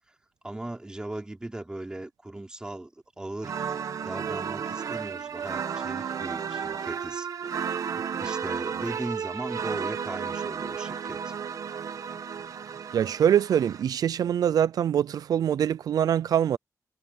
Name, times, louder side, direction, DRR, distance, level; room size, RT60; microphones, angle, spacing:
voice 1, 0.4-2.9 3.2-3.7 4.0-7.3 7.9-11.3, right 1 dB, 15° right, 3.7 m, -38 dB
sound 1, 3.4-13.8, right 7 dB, 65° right, 1.4 m, -33 dB
voice 2, 12.9-16.6, right 9 dB, 90° right, 0.4 m, -24 dB
wide cardioid pair, 160°, 6 cm